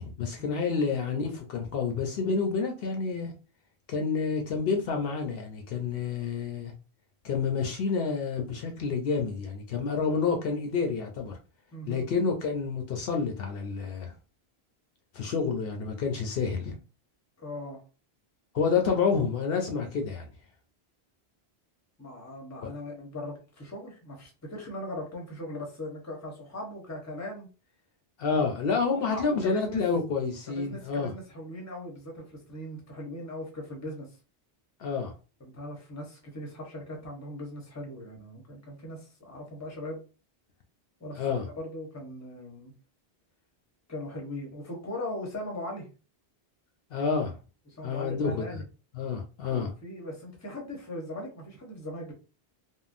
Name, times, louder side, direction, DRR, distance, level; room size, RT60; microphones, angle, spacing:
voice 1, 0.0-3.3 3.9-6.7 7.2-11.4 11.9-14.1 15.1-16.8 18.5-20.3 22.6-22.7 28.2-31.1 34.8-35.1 41.1-41.5 46.9-47.4 47.8-48.6 48.9-49.7, left 5 dB, 70° left, 0.7 m, -29 dB
voice 2, 11.7-12.1 17.4-17.8 22.0-27.5 28.3-28.4 28.9-29.8 30.5-34.1 35.4-40.0 41.0-42.7 43.9-45.9 47.7-48.6 49.5-52.1, left 1 dB, 20° left, 0.7 m, -39 dB
3.5 x 2.0 x 2.5 m
omnidirectional pair, 1.1 m